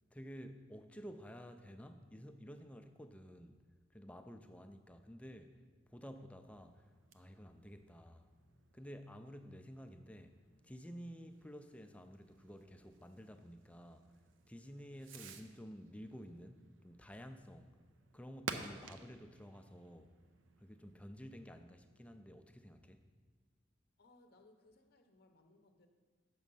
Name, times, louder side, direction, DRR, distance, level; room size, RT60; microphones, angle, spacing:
voice 1, 0.1-3.6 3.9-5.6 5.9-8.3 8.7-10.4 10.6-14.2 14.5-17.7 18.1-20.2 20.6-23.0, equal, 5° left, 7 dB, 0.4 m, -52 dB
Fireworks, 6.4-21.0, right 4 dB, 85° right, 0.6 m, -54 dB
voice 2, 24.0-25.9, left 2 dB, 55° left, 6 dB, 0.6 m, -66 dB
7.5 x 6.1 x 5.4 m, 1.5 s
head